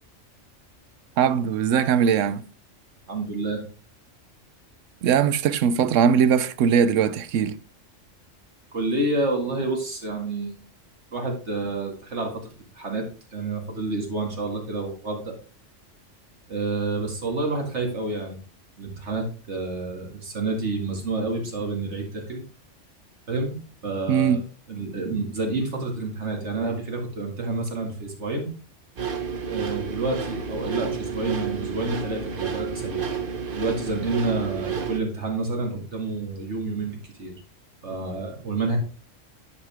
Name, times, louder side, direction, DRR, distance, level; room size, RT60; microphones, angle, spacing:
voice 1, 1.2-2.5 5.0-7.6 24.1-24.4, right 7 dB, 85° right, 1.0 m, -20 dB
voice 2, 3.1-3.6 8.7-10.6 11.1-15.4 16.5-18.4 18.8-22.4 23.3-24.4 24.7-28.5 29.4-33.1 33.5-37.3 37.8-38.8, right 3 dB, 65° right, 2.4 m, -29 dB
sound 1, 29.0-35.0, right 6 dB, 50° right, 1.0 m, -31 dB
9.8 x 5.2 x 3.4 m
omnidirectional pair, 1.3 m